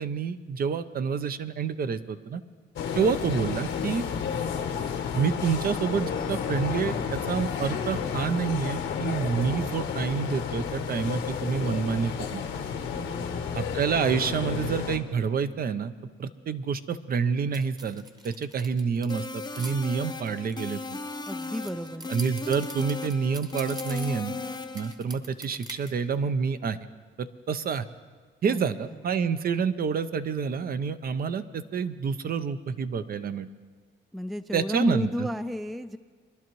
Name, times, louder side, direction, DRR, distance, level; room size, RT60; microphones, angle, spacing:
voice 1, 0.0-2.4 2.9-4.0 5.1-12.4 13.5-15.9 16.2-19.3 19.6-21.0 22.1-24.4 24.7-26.8 27.2-27.9 28.4-33.5 34.5-35.3, right 6 dB, 50° right, 12 dB, 0.6 m, -28 dB
sound 1, 2.8-15.0, left 7 dB, 75° left, 1.0 m, -31 dB
voice 2, 12.9-13.7 21.3-22.1 28.5-28.6 28.9-29.0 34.1-36.0, left 1 dB, ahead, 12 dB, 0.3 m, -32 dB
sound 2, 17.5-19.7 20.2-24.5 24.7-25.9, right 1 dB, 20° right, 1.1 m, -44 dB
sound 3, 19.1-24.9, left 3 dB, 20° left, 0.7 m, -36 dB
22.5 x 11.0 x 3.1 m, 1.5 s
cardioid pair, 90°, 20 cm